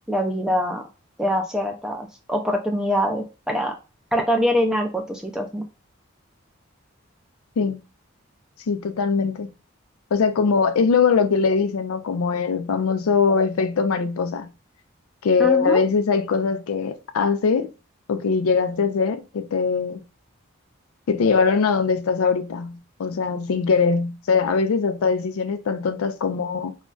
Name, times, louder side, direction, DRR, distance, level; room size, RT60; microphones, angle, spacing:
voice 1, 0.1-0.8 1.2-3.7 4.1-5.6 15.4-15.8, equal, 5° right, 0.4 m, -24 dB
voice 2, 8.7-9.5 10.1-14.5 15.2-17.7 18.1-20.0 21.1-26.8, left 5 dB, 85° left, 0.4 m, -21 dB
2.3 x 2.1 x 3.7 m
head